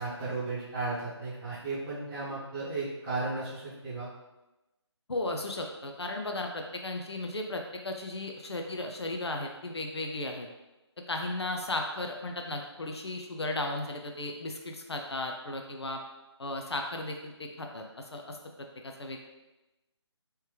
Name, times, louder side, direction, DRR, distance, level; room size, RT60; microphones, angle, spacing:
voice 1, 0.0-4.1, right 3 dB, 10° right, -11 dB, 1.0 m, -35 dB
voice 2, 5.1-10.5 11.1-16.0 16.4-18.4 18.8-19.2, left 2 dB, 65° left, 3 dB, 0.5 m, -35 dB
3.2 x 3.0 x 3.3 m, 1.0 s
figure-of-eight pair, 150°, 15 cm